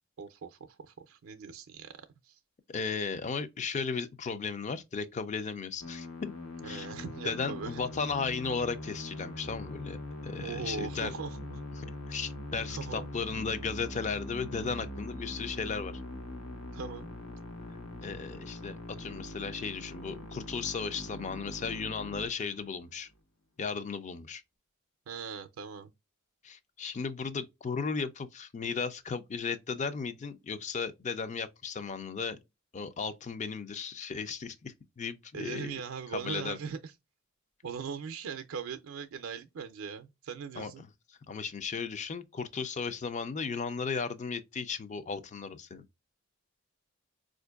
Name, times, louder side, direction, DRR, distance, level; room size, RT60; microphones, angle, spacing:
voice 1, 0.2-2.4 6.6-7.8 10.4-11.6 12.7-13.1 16.7-17.1 25.1-25.9 35.3-36.9 37.6-40.8, right 6 dB, 80° right, 0.4 m, -40 dB
voice 2, 2.7-6.3 6.6-6.9 7.2-10.0 10.2-11.1 11.8-15.9 18.0-23.1 23.6-24.4 26.4-32.4 32.7-35.7 36.1-36.6 40.6-40.7 41.3-45.8, left 5 dB, 35° left, 0.4 m, -35 dB
Musical instrument, 5.8-22.9, left 1 dB, 75° left, 0.9 m, -42 dB
4.3 x 2.5 x 2.3 m
head